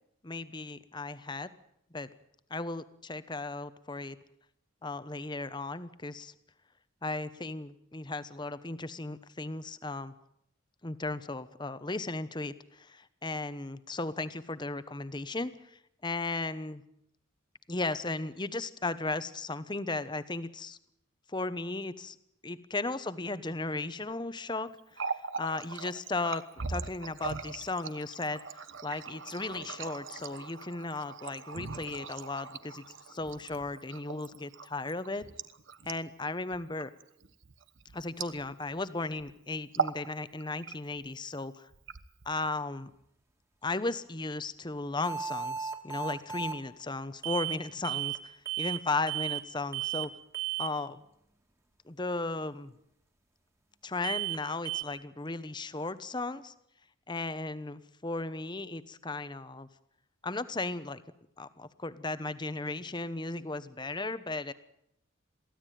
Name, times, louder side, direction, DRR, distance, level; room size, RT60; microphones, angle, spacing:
voice 1, 0.2-1.5 1.9-2.1 2.5-4.2 4.8-6.3 7.0-10.1 10.8-16.8 17.7-20.8 21.3-22.2 22.4-25.1 25.4-26.4 26.7-35.2 35.9-36.9 37.9-41.7 42.2-42.9 43.6-50.1 50.6-51.0 51.8-52.7 53.8-56.5 57.1-59.7 60.2-61.0 61.4-64.5, left 2 dB, 20° left, 14 dB, 1.0 m, -36 dB
Water tap faucet, 24.8-38.8 39.1-39.3 39.6-40.1 40.4-41.1 41.7-42.5, right 5 dB, 70° right, 1.3 m, -39 dB
sound 1, 45.0-46.6 47.2-47.6 47.8-48.2 48.5-48.8 49.1-49.4 49.7-50.1 50.3-50.7 54.0-54.4 54.7-54.8, right 11 dB, 15° right, 2.0 m, -34 dB
23.0 x 16.0 x 9.2 m, 0.76 s
head